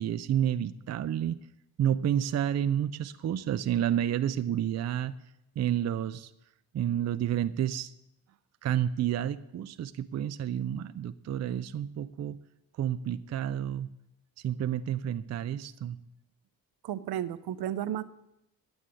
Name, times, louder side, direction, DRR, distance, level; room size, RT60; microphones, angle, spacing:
voice 1, 0.0-1.4 1.8-5.1 5.6-6.3 6.7-7.9 8.6-12.4 12.8-13.9 14.4-16.0, right 10 dB, 45° right, 13 dB, 0.5 m, -30 dB
voice 2, 16.8-18.0, right 11 dB, 75° right, 14 dB, 0.8 m, -33 dB
9.7 x 9.0 x 8.4 m, 0.87 s
cardioid pair, 125°, 38 cm